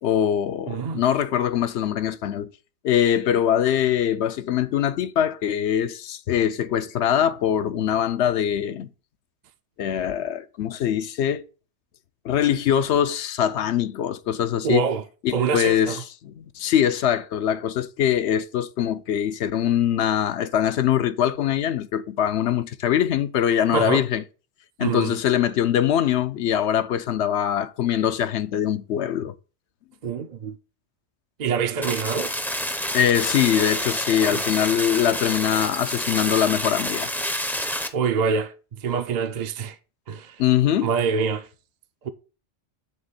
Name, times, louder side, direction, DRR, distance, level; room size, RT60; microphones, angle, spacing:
voice 1, 0.0-2.5 2.8-8.9 9.8-11.4 12.2-14.8 15.2-16.0 16.2-24.2 24.8-29.3 32.9-37.1 40.4-40.9, left 10 dB, 70° left, 0.8 m, -23 dB
voice 2, 0.7-1.0 14.6-15.0 15.3-16.0 23.7-24.0 24.8-25.2 30.0-30.6 31.4-32.3 34.3-34.4 37.9-39.8 40.1-40.4 40.8-41.5 42.0-42.1, right 6 dB, 50° right, 0.5 m, -25 dB
sound 1, 31.8-37.9, equal, ahead, 0.5 m, -28 dB
7.4 x 3.5 x 5.5 m
omnidirectional pair, 1.2 m